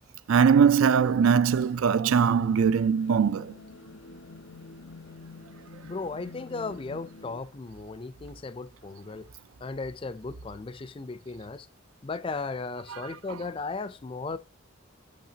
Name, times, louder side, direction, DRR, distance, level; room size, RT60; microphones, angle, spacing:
voice 1, 0.3-3.5 13.3-13.5, right 6 dB, 85° right, 0.4 m, -21 dB
sound 1, 2.1-7.4, left 3 dB, 70° left, 0.6 m, -47 dB
voice 2, 5.8-9.3 9.6-11.7 12.0-14.4, left 3 dB, 25° left, 0.4 m, -36 dB
6.4 x 5.7 x 2.7 m
head